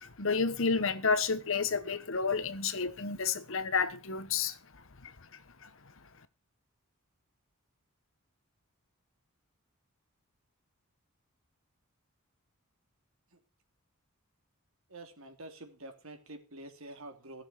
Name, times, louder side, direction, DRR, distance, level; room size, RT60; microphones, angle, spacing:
voice 1, 0.0-4.6 5.0-5.1 5.6-5.7, left 5 dB, 60° left, 1.2 m, -30 dB
voice 2, 14.9-17.4, right 2 dB, 65° right, 2.9 m, -47 dB
16.0 x 7.2 x 6.7 m
head